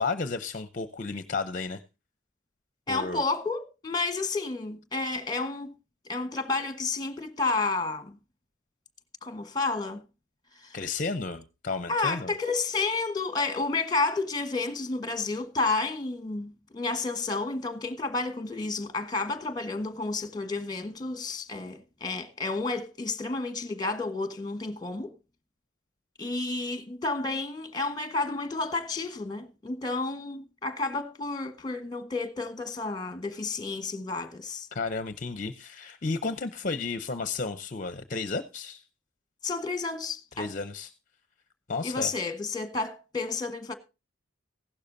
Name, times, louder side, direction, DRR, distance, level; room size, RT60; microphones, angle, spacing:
voice 1, 0.0-1.8 2.9-3.2 10.7-12.3 34.7-38.8 40.4-40.9 41.7-42.1, left 4 dB, 40° left, 0.7 m, -32 dB
voice 2, 2.9-5.7 6.0-8.2 9.2-10.0 10.5-10.8 11.9-25.1 26.2-34.7 39.4-40.5 41.8-43.7, left 3 dB, 20° left, 1.3 m, -31 dB
16.0 x 12.0 x 2.7 m
head